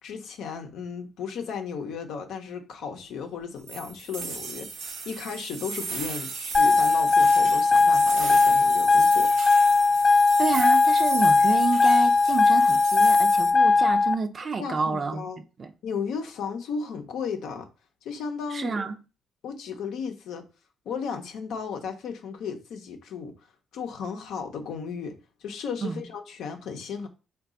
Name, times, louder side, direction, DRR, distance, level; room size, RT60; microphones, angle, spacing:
voice 1, 0.0-9.3 14.6-15.4 15.8-17.7 18.0-18.8 19.4-20.5 20.9-23.3 23.7-27.1, left 6 dB, 80° left, 0.7 m, -35 dB
sound 1, 3.7-13.5, right 4 dB, 85° right, 0.7 m, -36 dB
sound 2, 6.5-14.1, left 3 dB, 30° left, 0.3 m, -19 dB
voice 2, 10.4-15.2 15.6-15.7 18.5-18.9 25.8-26.1, right 5 dB, 45° right, 0.4 m, -29 dB
4.0 x 2.3 x 3.6 m
cardioid pair, 90°, 0 cm